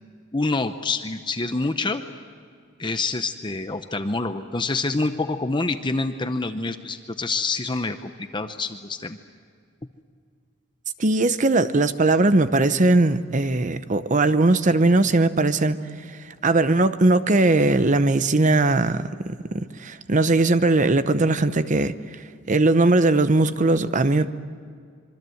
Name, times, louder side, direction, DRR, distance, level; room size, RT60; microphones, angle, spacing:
voice 1, 0.3-2.0 2.8-9.2, left 3 dB, 25° left, 0.7 m, -27 dB
voice 2, 11.0-15.8 16.1-22.0 22.5-24.3, right 2 dB, 40° right, 0.8 m, -19 dB
26.0 x 24.0 x 7.8 m
head